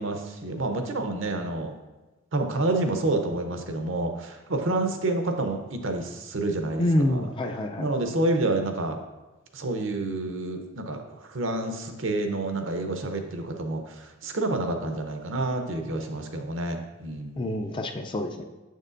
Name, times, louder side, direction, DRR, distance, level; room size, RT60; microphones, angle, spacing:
voice 1, 0.0-1.7 2.3-7.2 7.8-9.0 9.5-11.0 11.3-13.8 14.2-17.4, right 2 dB, 65° right, 5 dB, 0.7 m, -28 dB
voice 2, 6.8-8.0 17.4-18.4, left 1 dB, 25° left, 4 dB, 0.3 m, -27 dB
7.0 x 6.5 x 2.5 m, 1.1 s
head